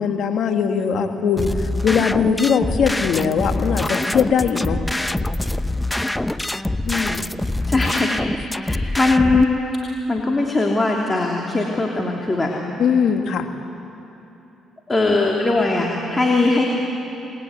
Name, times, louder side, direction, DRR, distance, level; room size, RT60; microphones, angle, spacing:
voice 1, 0.0-4.8 6.8-7.2 12.8-13.5, left 6 dB, 70° left, 5 dB, 2.2 m, -20 dB
sound 1, 1.4-9.4, left 1 dB, 10° left, 0.9 m, -24 dB
voice 2, 7.7-8.2 8.6-9.5 10.1-12.5 14.9-16.6, left 3 dB, 25° left, -1 dB, 3.4 m, -20 dB
27.0 x 21.0 x 9.8 m, 2.9 s
supercardioid pair, 60°, 0 cm